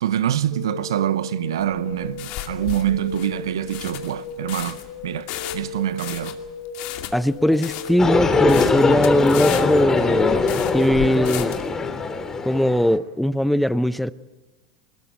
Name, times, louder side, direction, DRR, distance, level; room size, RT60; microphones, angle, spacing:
voice 1, 0.0-6.4 9.5-9.7, right 11 dB, 75° right, 0.8 m, -25 dB
sound 1, 0.5-10.1, left 5 dB, 70° left, 3.9 m, -37 dB
sound 2, 1.6-11.7, left 13 dB, 55° left, 2.4 m, -34 dB
voice 2, 7.1-10.4 10.7-11.6 12.4-14.1, equal, ahead, 0.7 m, -20 dB
sound 3, 8.0-13.0, left 4 dB, 20° left, 2.4 m, -21 dB
23.5 x 20.5 x 9.2 m
hypercardioid pair, 85°, 2 cm